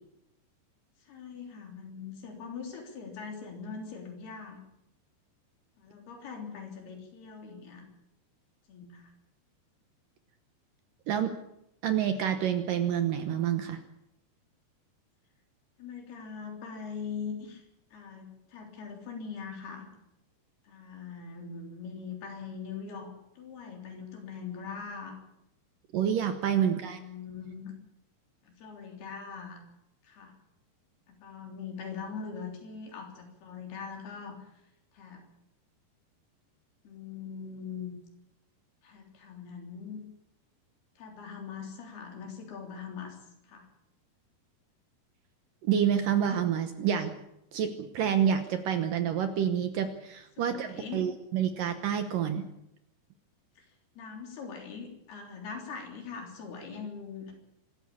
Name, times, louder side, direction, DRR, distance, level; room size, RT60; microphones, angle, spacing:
voice 1, 1.0-4.6 5.8-7.8 8.7-9.1 15.8-17.6 17.9-19.9 20.6-25.2 26.6-27.7 28.4-29.6 30.0-30.4 31.1-34.5 34.9-35.2 36.8-37.9 38.8-40.0 41.0-43.2 43.4-43.7 50.4-51.1 53.6-57.3, left 6 dB, 65° left, 3 dB, 5.5 m, -42 dB
voice 2, 11.8-13.8 25.9-27.0 45.6-47.1 47.5-52.4, right 9 dB, 70° right, 9 dB, 2.3 m, -28 dB
24.5 x 13.5 x 8.6 m, 0.82 s
omnidirectional pair, 4.9 m